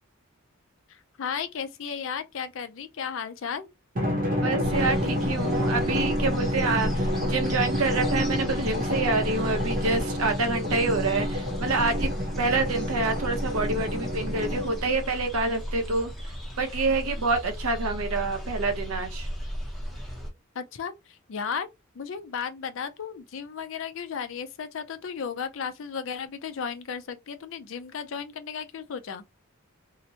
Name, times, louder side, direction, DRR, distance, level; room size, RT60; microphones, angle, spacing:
voice 1, 0.9-3.7 20.6-21.7 22.0-29.2, left 6 dB, 60° left, 0.4 m, -34 dB
Drum, 4.0-15.0, equal, 40° right, 0.7 m, -29 dB
voice 2, 4.4-12.1 12.4-16.1 16.6-19.3, right 3 dB, 75° right, 0.7 m, -27 dB
sound 1, 4.6-20.3, equal, ahead, 0.7 m, -35 dB
2.8 x 2.1 x 2.7 m
head